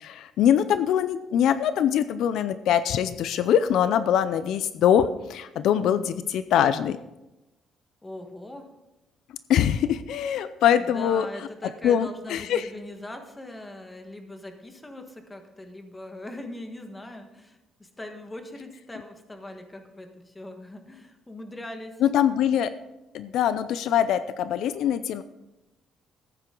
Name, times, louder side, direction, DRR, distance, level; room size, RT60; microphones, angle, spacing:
voice 1, 0.0-7.0 9.5-11.3 11.8-12.6 22.0-22.7 23.1-25.2, left 9 dB, 80° left, 13 dB, 0.5 m, -23 dB
voice 2, 8.0-8.7 10.7-22.0, left 1 dB, 15° left, 5 dB, 1.4 m, -41 dB
14.0 x 8.9 x 3.8 m, 0.96 s
cardioid pair, 125°, 0 cm